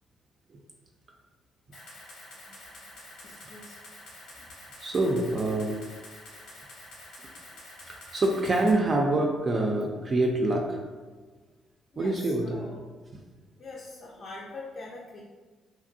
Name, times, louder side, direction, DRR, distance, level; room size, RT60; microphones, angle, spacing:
Camera, 1.7-8.7, left 1 dB, 85° left, 1.0 m, -48 dB
voice 1, 3.2-3.8 11.9-12.8 13.6-15.2, left 2 dB, 55° left, -4 dB, 0.5 m, -43 dB
voice 2, 4.8-5.8 7.2-7.3 7.9-10.8 12.0-12.6, right 2 dB, 40° right, 1 dB, 0.3 m, -26 dB
2.9 x 2.5 x 2.6 m, 1.4 s
cardioid pair, 90°, 0 cm